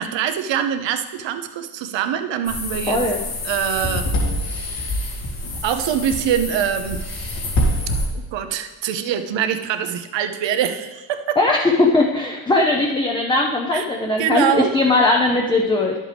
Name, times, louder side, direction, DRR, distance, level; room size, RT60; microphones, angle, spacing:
voice 1, 0.0-3.0 3.4-4.1 5.6-7.1 8.1-11.4 13.7-13.8 14.2-14.7, right 9 dB, 65° right, 9 dB, 0.8 m, -23 dB
sound 1, 2.4-8.1, left 1 dB, 70° left, 2.3 m, -25 dB
voice 2, 2.9-3.2 11.4-16.0, left 2 dB, 10° left, 0 dB, 0.6 m, -19 dB
10.5 x 7.5 x 3.4 m, 1.1 s
cardioid pair, 120°, 48 cm